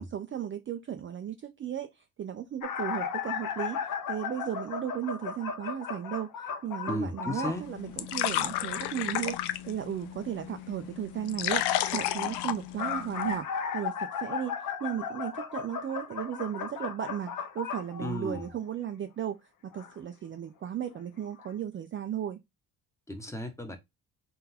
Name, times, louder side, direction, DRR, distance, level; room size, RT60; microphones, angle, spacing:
voice 1, 0.0-22.4, right 10 dB, 35° right, 0.4 m, -35 dB
sound 1, 2.6-7.6 12.5-18.6 19.7-19.9 20.9-21.0 21.4-21.5, left 6 dB, 55° left, 0.8 m, -35 dB
voice 2, 6.9-7.6 18.0-18.5 23.1-23.8, left 1 dB, 5° left, 0.9 m, -34 dB
sound 2, 7.4-13.4, left 12 dB, 90° left, 0.6 m, -33 dB
3.8 x 2.5 x 4.1 m
cardioid pair, 110°, 39 cm